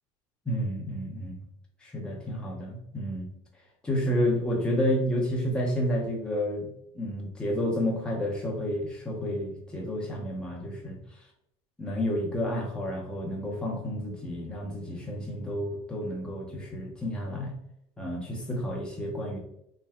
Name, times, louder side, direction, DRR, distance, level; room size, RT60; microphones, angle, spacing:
voice 1, 0.5-1.4 1.8-3.3 3.8-6.7 6.9-11.0 11.8-17.5 18.0-19.4, equal, 5° left, -2 dB, 0.6 m, -30 dB
2.6 x 2.1 x 3.4 m, 0.76 s
cardioid pair, 145°, 15 cm